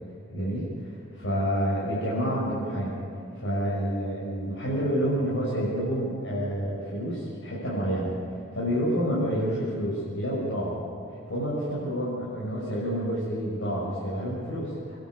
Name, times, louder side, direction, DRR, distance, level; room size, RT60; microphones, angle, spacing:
voice 1, 0.3-0.9 1.1-3.0 3.4-8.1 8.5-10.8 11.3-15.0, equal, 70° left, -8 dB, 6.4 m, -28 dB
27.5 x 12.0 x 8.6 m, 2.6 s
head